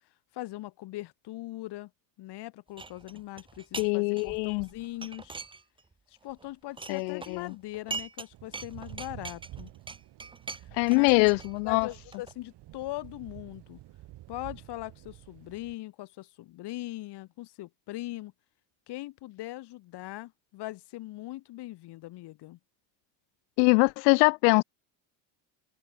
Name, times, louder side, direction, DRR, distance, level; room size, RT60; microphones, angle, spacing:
voice 1, 0.3-1.9 2.2-5.4 6.1-9.7 10.5-10.7 11.0-11.1 11.6-13.8 14.3-18.3 18.9-22.6, left 17 dB, 55° left, 1.3 m, -40 dB
sound 1, 2.8-3.9 4.2-5.9 6.2-8.3 8.5-12.3, right 3 dB, 10° right, 0.9 m, -42 dB
voice 2, 3.8-4.7 6.9-7.5 10.7-11.9 23.6-24.6, left 39 dB, 85° left, 0.9 m, -23 dB
Thunder / Rain, 8.3-15.7, right 15 dB, 55° right, 3.1 m, -49 dB
open air
cardioid pair, 115°, 49 cm